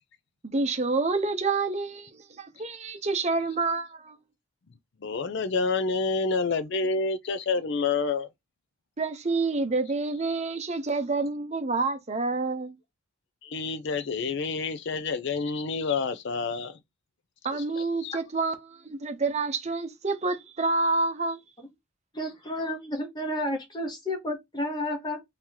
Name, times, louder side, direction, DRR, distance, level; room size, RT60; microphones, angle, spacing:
voice 1, 0.4-4.2 9.0-12.7 17.4-21.4, right 3 dB, 30° right, 0.7 m, -28 dB
voice 2, 5.0-8.3 13.4-16.8 18.0-18.1, left 4 dB, 55° left, 0.4 m, -28 dB
voice 3, 22.1-25.2, left 1 dB, 20° left, 1.0 m, -31 dB
3.0 x 2.8 x 3.8 m
head